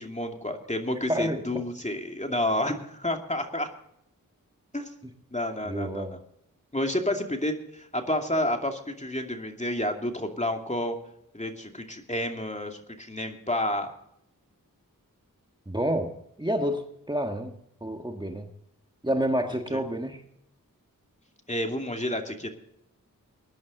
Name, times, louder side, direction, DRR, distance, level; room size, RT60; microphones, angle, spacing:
voice 1, 0.0-3.7 4.7-4.9 5.3-6.2 6.7-11.0 11.3-13.9 19.7-19.8 21.5-22.5, left 1 dB, 20° left, 3 dB, 2.6 m, -30 dB
voice 2, 1.1-1.4 5.6-6.2 15.7-16.1 16.4-16.8 17.1-18.5 19.0-20.2, equal, 15° right, 4 dB, 1.6 m, -28 dB
21.0 x 10.5 x 4.0 m, 0.75 s
wide cardioid pair, 45°, 34 cm